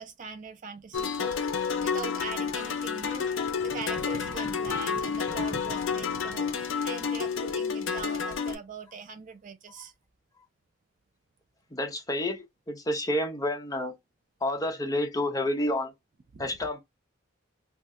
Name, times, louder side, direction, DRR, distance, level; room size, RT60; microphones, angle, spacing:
voice 1, 0.0-9.9 16.3-16.5, right 5 dB, 40° right, 0.3 m, -41 dB
sound 1, 0.9-8.5, left 6 dB, 70° left, 0.5 m, -30 dB
voice 2, 11.7-13.9 14.4-15.9 16.4-16.8, left 1 dB, 15° left, 0.5 m, -29 dB
2.7 x 2.1 x 3.5 m
head